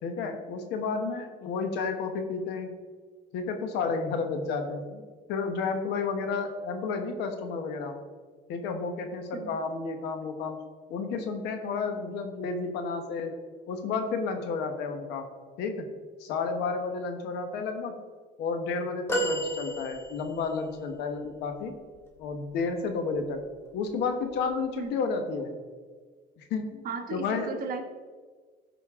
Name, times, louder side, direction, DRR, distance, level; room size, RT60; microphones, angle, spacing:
voice 1, 0.0-2.7 3.3-5.0 5.3-7.9 8.5-10.6 10.9-13.3 13.7-15.3 15.6-15.8 16.2-17.9 18.4-21.7 22.2-23.4 23.7-25.5 26.4-26.8 27.1-27.6, left 4 dB, 90° left, 6 dB, 1.2 m, -31 dB
sound 1, 19.1-20.5 22.9-23.1 24.4-24.5, equal, 15° left, 1.8 m, -31 dB
voice 2, 26.8-27.8, right 4 dB, 60° right, 5 dB, 1.2 m, -35 dB
14.5 x 5.2 x 3.7 m, 1.5 s
cardioid pair, 110°, 17 cm